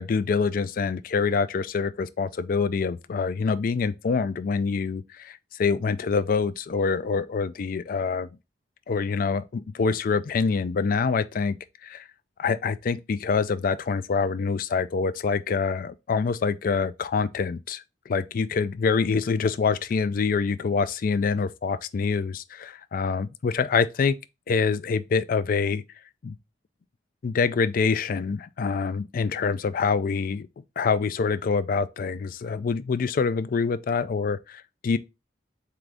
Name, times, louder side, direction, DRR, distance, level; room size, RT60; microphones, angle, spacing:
voice 1, 0.0-8.3 8.9-11.6 11.8-12.1 12.4-24.2 24.5-25.8 26.2-26.4 27.2-30.5 30.8-35.0, left 5 dB, 50° left, 0.4 m, -25 dB
3.8 x 3.5 x 3.3 m
head